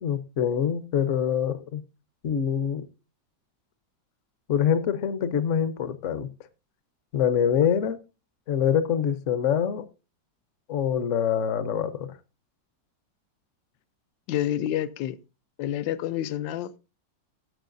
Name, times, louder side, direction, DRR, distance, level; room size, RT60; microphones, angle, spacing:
voice 1, 0.0-1.8 2.2-2.8 4.5-6.3 7.1-8.0 8.5-9.9 10.7-12.1, left 8 dB, 55° left, 1.0 m, -25 dB
voice 2, 14.3-15.2 15.6-16.8, left 12 dB, 80° left, 1.4 m, -28 dB
14.0 x 8.2 x 2.6 m
omnidirectional pair, 2.0 m